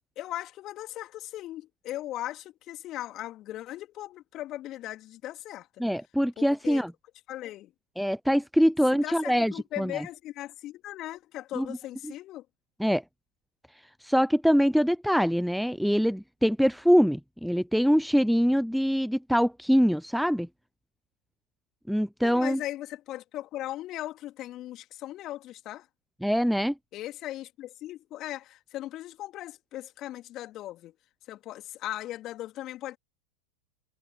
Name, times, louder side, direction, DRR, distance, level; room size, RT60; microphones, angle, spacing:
voice 1, 0.2-5.7 6.4-6.8 7.3-7.7 8.9-12.4 22.2-25.9 26.9-30.9 31.3-33.0, left 14 dB, 40° left, 3.3 m, -38 dB
voice 2, 5.8-6.9 8.0-10.0 11.5-11.8 12.0-12.1 12.8-13.0 14.0-20.5 21.9-22.6 26.2-26.7, equal, ahead, 0.7 m, -24 dB
figure-of-eight pair, 90°, 0 cm